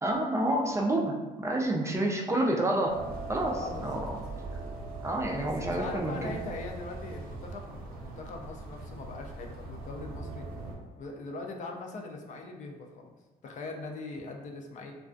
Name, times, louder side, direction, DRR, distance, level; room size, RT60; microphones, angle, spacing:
voice 1, 0.0-3.0 3.3-4.2 5.0-6.4, right 1 dB, 20° right, 0 dB, 0.3 m, -29 dB
sound 1, 2.9-10.8, right 2 dB, 70° right, 0.5 m, -41 dB
voice 2, 3.5-4.0 5.4-10.5 10.9-13.1 13.4-14.9, left 3 dB, 50° left, 2 dB, 0.4 m, -41 dB
2.3 x 2.3 x 2.4 m, 1.2 s
cardioid pair, 90°, 16 cm